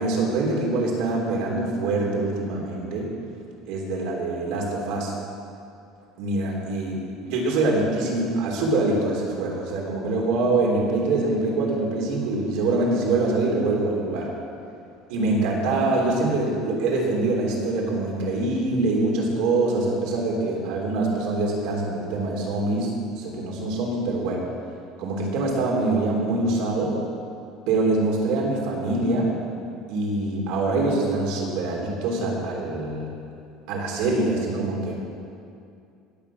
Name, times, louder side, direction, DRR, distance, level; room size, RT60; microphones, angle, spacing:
voice 1, 0.0-3.1 3.7-5.1 6.2-7.0 7.3-14.3 15.1-24.4 25.0-27.0 27.7-29.3 29.9-33.1 33.7-35.0, right 2 dB, 65° right, -1 dB, 3.4 m, -24 dB
19.0 x 6.8 x 7.5 m, 2.5 s
cardioid pair, 175°, 0 cm